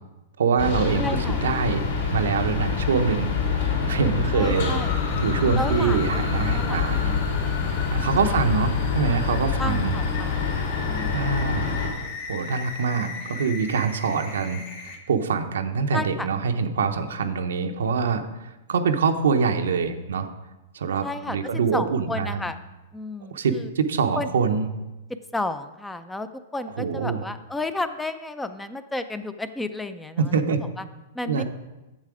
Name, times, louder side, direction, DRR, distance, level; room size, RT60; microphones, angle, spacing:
voice 1, 0.4-1.8 2.1-4.9 5.2-7.2 7.9-9.9 11.1-11.7 12.3-20.3 20.7-22.5 23.3-24.7 26.8-27.2 30.2-30.6 31.3-31.4, right 5 dB, 90° right, 7 dB, 0.8 m, -25 dB
sound 1, 0.6-11.9, left 5 dB, 80° left, 3.1 m, -26 dB
voice 2, 1.0-1.4 4.3-4.9 5.5-6.0 6.3-7.4 8.2-8.5 9.6-10.5 10.9-11.4 15.9-16.3 21.0-21.4 21.7-22.6 22.9-23.7 24.2-24.3 25.3-26.3 26.5-30.4 31.1-31.4, left 2 dB, 5° left, 11 dB, 0.3 m, -32 dB
sound 2, 4.4-15.0, left 5 dB, 50° left, 1.2 m, -37 dB
7.6 x 7.3 x 4.8 m, 1.1 s
hypercardioid pair, 150°, 0 cm